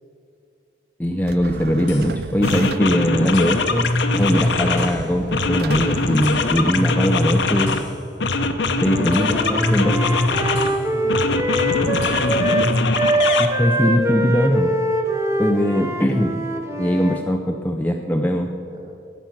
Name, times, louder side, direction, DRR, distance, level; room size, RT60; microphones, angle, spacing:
voice 1, 1.0-7.8 8.8-10.0 13.4-14.7 15.4-16.4 16.8-18.5, equal, 10° left, 3 dB, 0.5 m, -20 dB
sound 1, 1.2-3.1 4.2-7.1, right 5 dB, 55° right, 0.3 m, -33 dB
sound 2, 1.9-2.0 2.4-5.0 5.3-7.9 8.2-10.7 11.1-13.5, left 3 dB, 75° left, 0.9 m, -21 dB
Wind instrument woodwind instrument, 8.8-12.7 12.9-17.3, right 1 dB, 15° right, 0.9 m, -23 dB
voice 2, 10.9-12.3 15.5-16.3 18.7-18.9, equal, 30° right, -1 dB, 3.0 m, -37 dB
12.0 x 9.1 x 5.9 m, 2.6 s
head